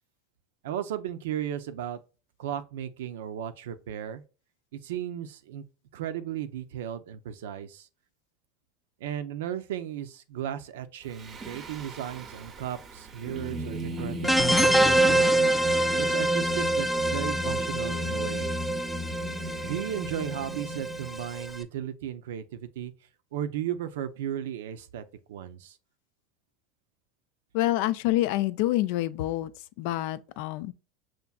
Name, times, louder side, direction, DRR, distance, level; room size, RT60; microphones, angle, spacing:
voice 1, 0.6-2.0 2.4-4.2 4.7-5.7 5.9-7.9 9.0-15.0 16.0-18.5 19.6-22.9 23.3-25.8, right 10 dB, 85° right, 0.5 m, -35 dB
Singing, 11.1-21.5, equal, 30° right, 0.6 m, -36 dB
sound 1, 14.2-21.6, right 1 dB, 5° left, 0.5 m, -25 dB
voice 2, 27.5-29.5 29.8-30.7, left 15 dB, 70° left, 0.3 m, -27 dB
5.7 x 2.5 x 2.3 m
supercardioid pair, 110°, 0 cm